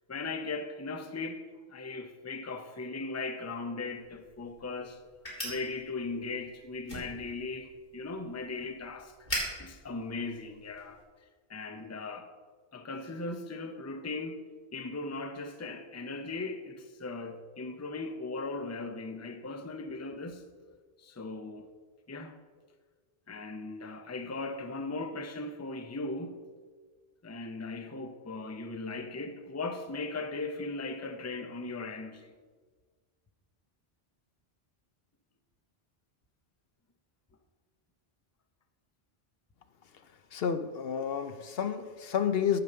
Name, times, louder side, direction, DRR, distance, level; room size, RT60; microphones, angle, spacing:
voice 1, 0.1-5.0 5.4-9.3 9.6-11.0 11.5-12.3 12.7-14.4 14.7-20.4 21.0-21.7 22.1-22.4 23.3-26.4 27.2-32.3, left 3 dB, 20° left, 0.6 m, -38 dB
sound 1, 3.9-11.0, equal, 45° left, 3.7 m, -43 dB
voice 2, 40.3-42.6, left 8 dB, 70° left, 0.9 m, -30 dB
8.9 x 8.0 x 6.6 m
omnidirectional pair, 1.1 m